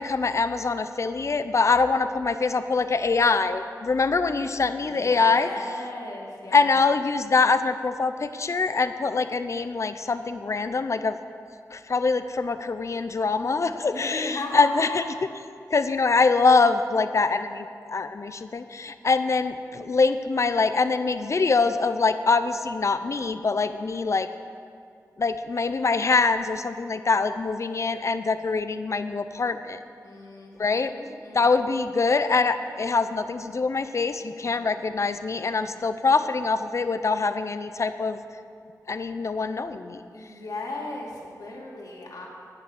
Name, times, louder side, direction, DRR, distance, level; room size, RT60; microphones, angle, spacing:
voice 1, 0.0-5.5 6.5-11.2 11.7-15.3 15.7-24.3 25.2-29.8 30.6-30.9 31.3-38.2 38.9-40.0, left 4 dB, 50° left, 11 dB, 0.5 m, -24 dB
voice 2, 4.5-6.8 13.9-15.0 30.0-31.5 34.4-35.0 35.4-35.9 40.1-42.3, left 2 dB, 75° left, -3 dB, 2.5 m, -38 dB
10.5 x 6.8 x 8.4 m, 2.4 s
wide cardioid pair, 115°, 6 cm